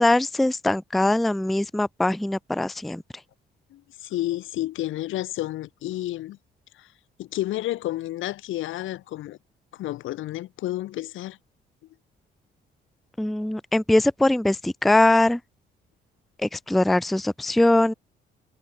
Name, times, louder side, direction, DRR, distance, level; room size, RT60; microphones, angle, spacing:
voice 1, 0.0-3.0 13.2-15.4 16.4-17.9, left 1 dB, ahead, 0.4 m, -21 dB
voice 2, 3.7-6.4 6.8-6.9 7.2-9.4 9.7-11.4, left 15 dB, 85° left, 1.1 m, -31 dB
cardioid pair, 90°, 20 cm